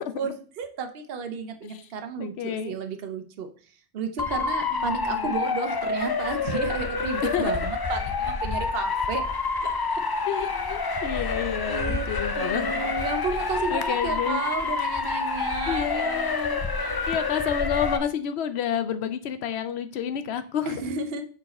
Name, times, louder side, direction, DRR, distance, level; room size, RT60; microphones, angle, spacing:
voice 1, 0.0-3.5 3.9-9.3 9.6-9.7 11.2-11.3 11.7-12.1 12.3-17.1 20.7-21.2, right 4 dB, 65° right, 6 dB, 1.0 m, -32 dB
voice 2, 2.2-2.8 4.7-5.3 7.3-7.5 10.3-12.9 13.7-14.4 15.7-16.6 17.0-20.7, left 8 dB, 75° left, 11 dB, 0.9 m, -30 dB
Motor vehicle (road) / Siren, 4.2-18.0, left 4 dB, 40° left, 0.3 m, -28 dB
6.0 x 4.7 x 4.2 m, 0.43 s
omnidirectional pair, 1.1 m